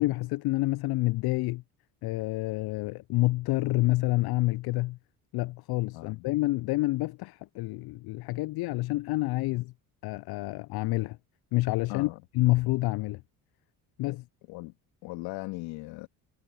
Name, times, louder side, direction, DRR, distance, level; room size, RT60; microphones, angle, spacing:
voice 1, 0.0-1.6 2.0-5.0 5.3-9.7 10.0-11.2 11.5-12.1 12.3-13.2 14.0-14.2, left 20 dB, 60° left, 0.6 m, -28 dB
voice 2, 5.9-6.2 11.9-12.2 14.1-14.2 14.5-14.7 15.0-16.1, left 22 dB, 75° left, 2.5 m, -38 dB
hypercardioid pair, 60°, 44 cm